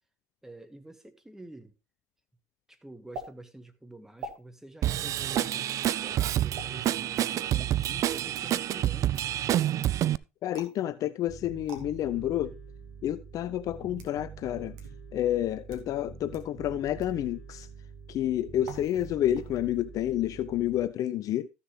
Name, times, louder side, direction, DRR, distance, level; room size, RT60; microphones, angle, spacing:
voice 1, 0.4-1.7 2.7-9.6, right 1 dB, 5° right, 1.6 m, -48 dB
sound 1, 3.1-3.3 4.2-4.4 5.3-5.5 6.5-6.7 7.6-7.8 10.5-10.8 11.7-11.8 12.8-12.9 13.7-14.2 14.8-14.9 15.6-15.9 16.3-16.4 17.0-17.2 18.6-19.1 19.4-19.8, right 3 dB, 60° right, 2.5 m, -43 dB
Drum kit / Drum, 4.8-10.2, right 12 dB, 40° right, 0.4 m, -28 dB
voice 2, 10.4-12.6 13.0-14.8 15.1-17.7 18.1-21.5, left 12 dB, 45° left, 0.5 m, -29 dB
Bass guitar, 11.3-20.9, right 6 dB, 85° right, 3.0 m, -46 dB
14.0 x 6.7 x 3.2 m
hypercardioid pair, 70°, 8 cm